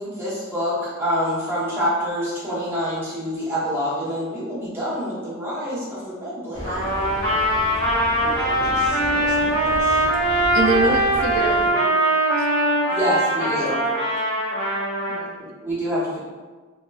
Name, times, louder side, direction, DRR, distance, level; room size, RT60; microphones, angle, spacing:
voice 1, 0.0-6.9 10.8-10.9 12.9-13.8 15.4-16.2, equal, 10° right, -10 dB, 0.9 m, -26 dB
sound 1, 6.5-11.7, equal, 45° left, 1.0 m, -34 dB
Trumpet, 6.6-15.2, right 1 dB, 25° left, 0.9 m, -21 dB
voice 2, 8.2-10.0 13.5-13.8, left 1 dB, 80° left, -3 dB, 0.6 m, -35 dB
voice 3, 10.5-12.5 15.1-15.4, right 2 dB, 75° right, 2 dB, 0.4 m, -26 dB
3.0 x 2.2 x 2.2 m, 1.4 s
head